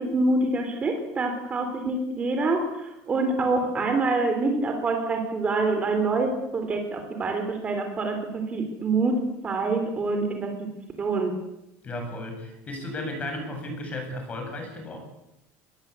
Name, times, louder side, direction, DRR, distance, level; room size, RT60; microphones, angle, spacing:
voice 1, 0.0-10.7 11.0-11.3, right 3 dB, 20° right, 4 dB, 3.8 m, -26 dB
voice 2, 11.8-15.0, left 1 dB, 20° left, 4 dB, 7.9 m, -34 dB
25.0 x 21.5 x 8.6 m, 0.87 s
cardioid pair, 170°, 6 cm